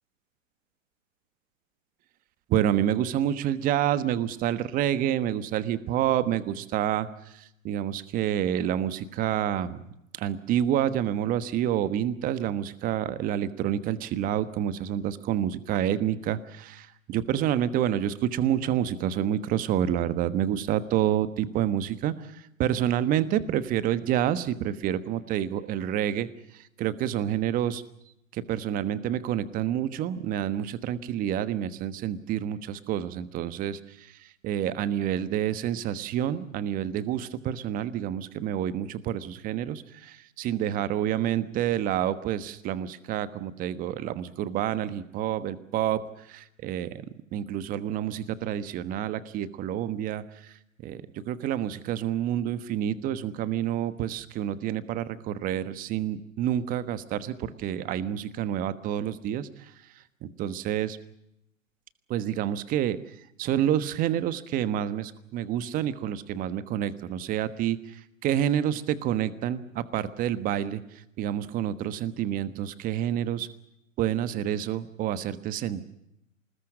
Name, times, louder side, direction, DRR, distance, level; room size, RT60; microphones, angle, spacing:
voice 1, 2.5-7.1 7.3-9.8 10.1-26.3 26.8-27.8 28.3-34.1 34.4-46.0 46.3-47.0 47.3-50.5 50.8-59.5 60.2-61.0 62.1-63.0 63.4-70.8 71.2-73.5 74.0-75.8, right 10 dB, 20° right, 14 dB, 1.3 m, -28 dB
25.0 x 20.5 x 7.4 m, 0.80 s
hypercardioid pair, 140°, 41 cm